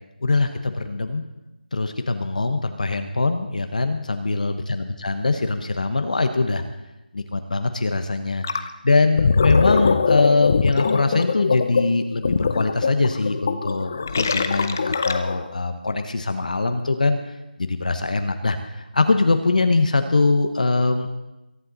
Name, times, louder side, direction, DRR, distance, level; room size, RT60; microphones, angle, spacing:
voice 1, 0.2-1.2 1.7-6.6 7.1-8.4 8.8-17.2 17.6-21.1, left 3 dB, 50° left, 8 dB, 1.1 m, -22 dB
Gurgling, 8.4-8.7 9.0-15.5, left 5 dB, 15° left, 0.4 m, -22 dB
22.5 x 11.0 x 4.1 m, 0.97 s
figure-of-eight pair, 175°, 5 cm